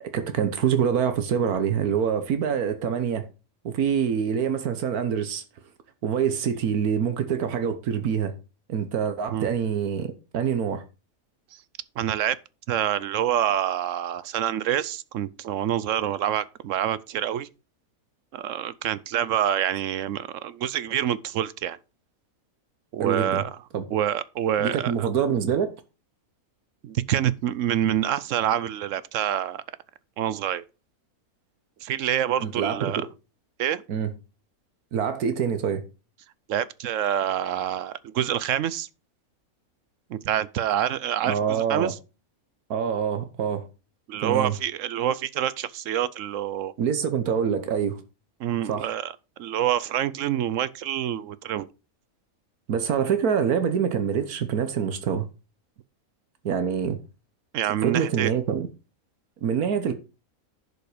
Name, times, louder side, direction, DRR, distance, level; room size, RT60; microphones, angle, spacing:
voice 1, 0.0-3.3 3.6-5.4 6.0-8.3 8.7-10.8 23.0-23.4 23.7-23.8 24.6-25.7 32.4-33.0 33.9-34.1 34.9-35.8 41.2-41.9 42.7-43.7 44.2-44.5 46.8-48.0 48.7-48.9 52.7-55.3 56.4-57.0 57.8-58.7 59.4-59.9, right 7 dB, 85° right, 1.5 m, -25 dB
voice 2, 12.0-12.4 12.7-17.5 18.3-21.8 22.9-23.5 23.9-25.1 26.8-29.6 30.2-30.6 31.8-33.0 33.6-33.8 36.5-38.9 40.1-42.0 44.1-46.7 48.4-49.1 49.4-51.7 57.5-58.3, right 10 dB, 65° right, 0.9 m, -26 dB
11.0 x 5.3 x 4.9 m
omnidirectional pair, 1.5 m